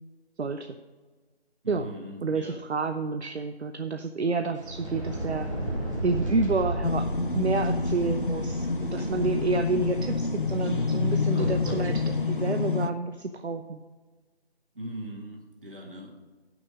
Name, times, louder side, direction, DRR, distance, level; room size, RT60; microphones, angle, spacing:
voice 1, 0.4-0.8 1.7-1.9 2.2-5.5 6.0-7.1 7.3-13.8, right 3 dB, 75° right, 7 dB, 0.7 m, -29 dB
voice 2, 1.6-2.6 14.7-16.2, equal, 55° right, 1 dB, 2.1 m, -40 dB
sound 1, 4.5-12.1, right 1 dB, 30° right, 2.2 m, -34 dB
sound 2, 6.8-12.9, left 4 dB, 50° left, 0.6 m, -28 dB
9.9 x 6.1 x 6.2 m, 1.3 s
figure-of-eight pair, 175°, 33 cm